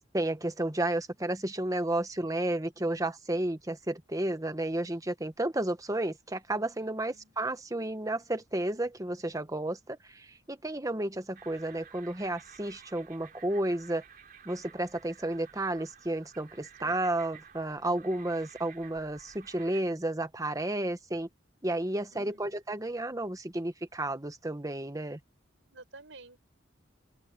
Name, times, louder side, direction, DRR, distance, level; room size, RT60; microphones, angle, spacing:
voice 1, 0.1-14.0 14.4-21.3 21.6-25.2, right 1 dB, 20° right, 1.2 m, -32 dB
voice 2, 6.7-7.3 22.1-22.6 25.6-26.4, right 3 dB, 85° right, 5.0 m, -53 dB
sound 1, 11.3-19.8, right 7 dB, 50° right, 3.9 m, -53 dB
open air
head